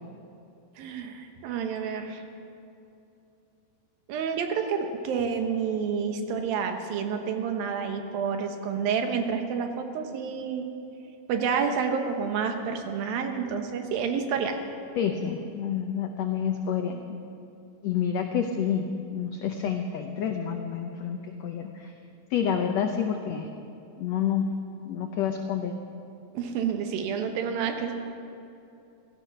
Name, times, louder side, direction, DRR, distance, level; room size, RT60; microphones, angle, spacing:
voice 1, 0.8-2.2 4.1-10.7 11.3-14.6 26.3-28.0, right 6 dB, 80° right, 5 dB, 2.9 m, -29 dB
voice 2, 15.0-17.2 17.8-21.9 22.3-23.5 24.0-24.5 24.8-25.8, left 8 dB, 90° left, 4 dB, 1.5 m, -29 dB
16.0 x 15.0 x 6.0 m, 2.7 s
omnidirectional pair, 4.1 m